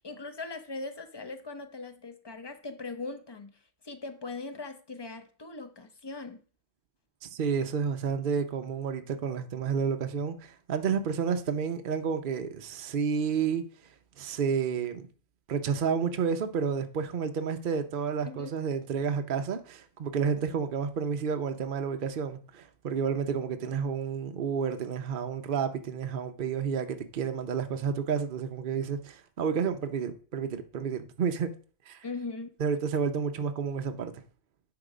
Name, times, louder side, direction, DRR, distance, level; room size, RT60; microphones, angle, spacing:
voice 1, 0.0-3.5 3.8-6.4 18.3-18.6 32.0-32.5, left 3 dB, 30° left, 0.5 m, -40 dB
voice 2, 7.2-13.6 14.2-15.1 15.5-31.5 31.9-32.0 32.6-34.1, right 6 dB, 50° right, 0.7 m, -30 dB
10.5 x 3.8 x 5.0 m
omnidirectional pair, 1.4 m